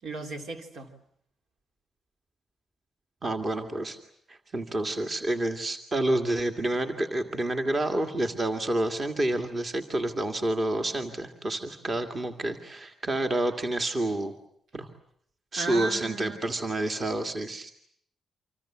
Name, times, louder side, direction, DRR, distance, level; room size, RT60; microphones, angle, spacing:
voice 1, 0.0-0.9 15.6-16.4, right 3 dB, 70° right, 5 dB, 3.9 m, -35 dB
voice 2, 3.2-4.0 4.3-14.3 14.7-14.9 15.5-17.7, right 1 dB, 25° right, 5 dB, 2.1 m, -29 dB
29.0 x 26.0 x 7.4 m, 0.68 s
wide cardioid pair, 165°, 0 cm